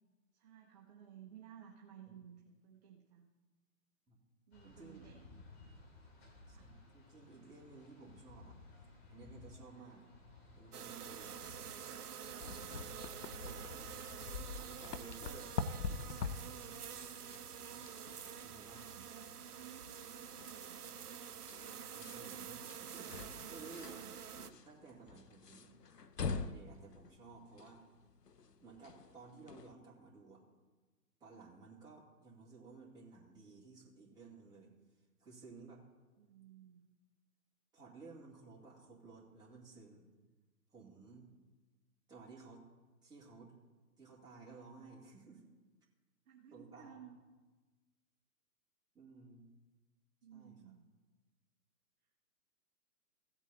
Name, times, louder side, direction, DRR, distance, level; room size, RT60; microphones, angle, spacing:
voice 1, 0.3-3.3 4.5-5.4 6.5-6.7 9.7-9.9 18.3-21.0 23.8-24.1 36.2-36.9 46.3-47.2 50.2-50.9, right 9 dB, 30° right, 1 dB, 0.9 m, -57 dB
sound 1, 4.5-17.9, left 3 dB, 40° left, 2.9 m, -59 dB
voice 2, 4.6-5.1 6.5-8.6 9.1-10.1 10.5-11.6 12.3-14.1 14.5-15.5 18.4-18.9 21.9-23.9 24.5-25.7 26.2-27.8 28.6-30.4 31.2-34.7 35.2-35.8 37.7-40.1 40.7-41.3 42.1-42.6 43.0-43.5 44.0-45.4 46.5-47.1 48.9-49.5 50.3-50.6, right 4 dB, 10° right, -5 dB, 2.2 m, -56 dB
sound 2, 10.7-24.5, right 8 dB, 70° right, 0.8 m, -48 dB
sound 3, 12.4-29.7, left 5 dB, 85° left, 0.9 m, -46 dB
16.0 x 8.2 x 4.1 m, 1.3 s
figure-of-eight pair, 130°, 47 cm